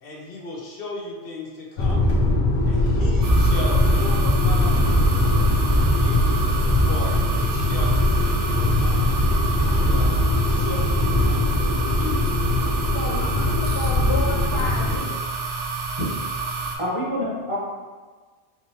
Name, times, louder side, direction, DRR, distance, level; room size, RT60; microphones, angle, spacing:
voice 1, 0.0-2.1 2.6-6.5 6.9-9.2 9.5-10.2 10.4-12.3 13.0-13.3, left 2 dB, 55° left, -2 dB, 0.8 m, -37 dB
sound 1, 1.8-15.0, left 1 dB, 85° left, 1.1 m, -20 dB
sound 2, 3.2-16.8, right 4 dB, 85° right, 0.9 m, -29 dB
voice 2, 12.9-15.2, left 3 dB, 20° left, -4 dB, 0.5 m, -30 dB
voice 3, 16.8-17.6, equal, 30° right, -6 dB, 1.0 m, -26 dB
4.7 x 2.9 x 2.8 m, 1.4 s
omnidirectional pair, 1.2 m